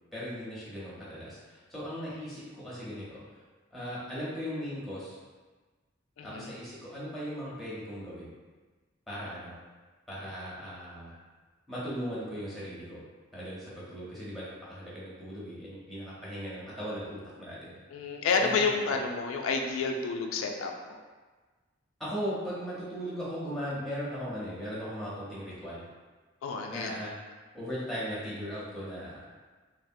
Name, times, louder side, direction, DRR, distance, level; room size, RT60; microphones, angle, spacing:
voice 1, 0.1-3.2 3.7-5.2 6.2-8.3 9.1-9.6 10.1-11.2 11.7-13.0 13.3-17.8 18.3-19.0 22.0-25.8 26.7-27.1 27.5-29.3, equal, ahead, -9 dB, 0.7 m, -38 dB
voice 2, 6.2-6.5 17.9-21.0 26.4-27.0, left 4 dB, 90° left, 2 dB, 0.3 m, -30 dB
3.2 x 2.0 x 2.6 m, 1.3 s
head